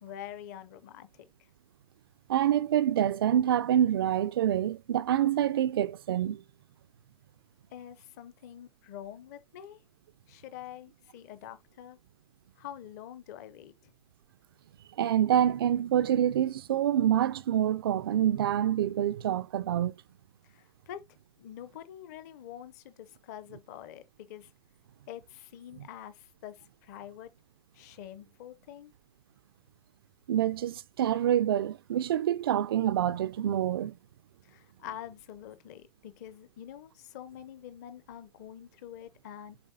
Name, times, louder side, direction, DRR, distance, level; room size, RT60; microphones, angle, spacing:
voice 1, 0.0-1.5 7.7-9.8 10.3-12.0 12.6-13.9 20.4-21.0 21.4-24.5 25.1-27.3 27.7-28.9 34.4-39.6, left 11 dB, 25° left, 0.7 m, -46 dB
voice 2, 2.3-6.4 15.0-19.9 30.3-33.9, right 10 dB, 35° right, 0.4 m, -26 dB
7.5 x 4.2 x 4.1 m
hypercardioid pair, 170°, 21 cm